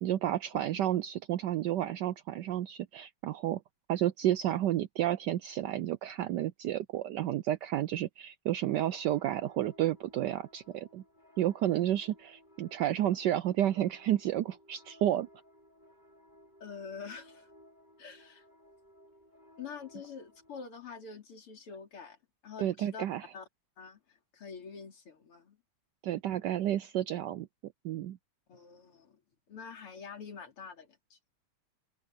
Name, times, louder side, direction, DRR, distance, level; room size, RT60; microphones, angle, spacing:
voice 1, 0.0-3.6 3.9-11.0 11.4-15.3 22.6-23.3 26.0-27.5 27.8-28.2, right 12 dB, 80° right, 1.0 m, -31 dB
sound 1, 8.6-20.7, left 1 dB, 20° left, 6.4 m, -60 dB
voice 2, 16.6-17.5 18.0-18.5 19.6-22.2 22.4-23.1 23.3-23.5 23.8-25.6 28.5-29.2 29.5-31.2, left 6 dB, 90° left, 4.0 m, -46 dB
omnidirectional pair, 2.4 m